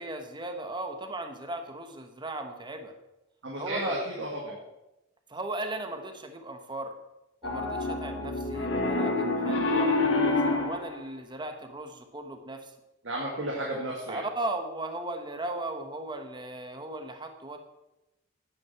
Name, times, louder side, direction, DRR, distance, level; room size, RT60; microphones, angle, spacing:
voice 1, 0.0-2.9 3.6-4.0 5.3-6.9 7.4-12.7 14.1-17.6, right 2 dB, 25° right, 6 dB, 1.2 m, -37 dB
voice 2, 3.4-4.6 9.5-9.6 13.0-14.2, right 1 dB, 80° right, -2 dB, 2.1 m, -33 dB
Piano, 7.4-10.9, left 3 dB, 75° left, 1.7 m, -27 dB
9.7 x 8.8 x 5.8 m, 0.95 s
head